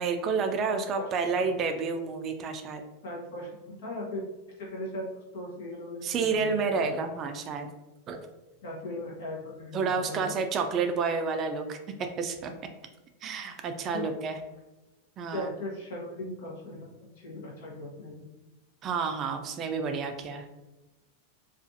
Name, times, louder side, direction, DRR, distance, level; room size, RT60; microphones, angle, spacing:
voice 1, 0.0-2.8 6.0-7.7 8.1-8.2 9.7-11.8 12.2-12.5 13.2-14.4 15.2-15.5 18.8-20.5, right 5 dB, 35° right, 6 dB, 0.3 m, -30 dB
voice 2, 0.7-1.1 3.0-4.3 4.6-5.1 5.3-6.9 8.6-10.3 13.9-14.1 15.3-16.9 17.2-18.3, left 1 dB, 75° left, -2 dB, 0.8 m, -38 dB
2.5 x 2.4 x 2.5 m, 1.0 s
hypercardioid pair, 115°, 0 cm